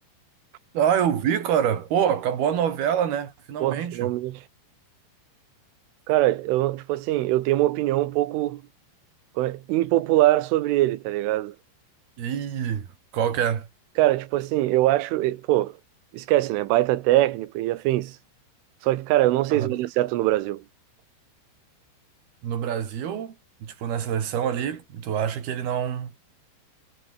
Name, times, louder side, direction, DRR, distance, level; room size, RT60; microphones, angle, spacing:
voice 1, 0.7-4.1 12.2-13.7 19.5-19.8 22.4-26.1, right 9 dB, 55° right, 4.6 m, -26 dB
voice 2, 3.6-4.4 6.1-8.6 9.4-11.6 14.0-15.8 16.1-18.2 18.8-20.6, right 16 dB, 90° right, 3.8 m, -23 dB
omnidirectional pair, 5.5 m